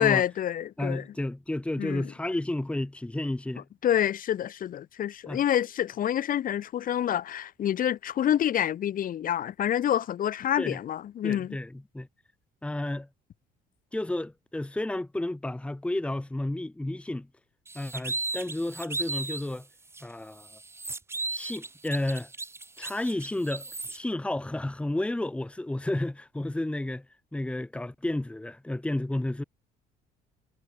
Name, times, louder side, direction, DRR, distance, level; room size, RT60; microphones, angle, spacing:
voice 1, 0.0-1.0 1.8-2.1 3.8-11.6, left 10 dB, 55° left, 2.4 m, -27 dB
voice 2, 0.8-3.6 5.3-5.4 10.6-10.8 11.2-12.1 12.6-13.1 13.9-17.3 17.7-19.7 20.0-20.6 21.3-22.3 22.8-27.0 27.3-29.4, left 1 dB, 5° left, 1.6 m, -31 dB
sound 1, 17.7-19.5 19.9-20.0 20.4-24.0, right 3 dB, 15° right, 1.2 m, -35 dB
cardioid pair, 110°, 17 cm